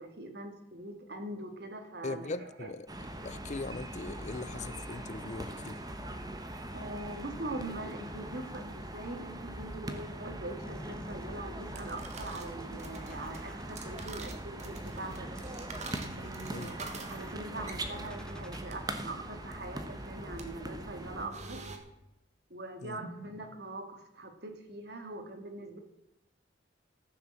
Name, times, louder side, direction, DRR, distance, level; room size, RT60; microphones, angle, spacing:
voice 1, 0.0-2.7 6.7-15.3 16.2-21.6 22.5-25.8, right 2 dB, 55° right, 1.9 m, -42 dB
voice 2, 2.0-2.9 3.2-5.8 16.5-16.7 22.8-23.0, left 3 dB, 35° left, 0.5 m, -40 dB
sound 1, 2.9-21.3, right 1 dB, 20° right, 1.0 m, -41 dB
sound 2, 10.6-18.6, equal, 5° left, 0.7 m, -53 dB
sound 3, 11.5-21.8, right 3 dB, 35° right, 1.5 m, -48 dB
14.0 x 6.9 x 7.5 m
head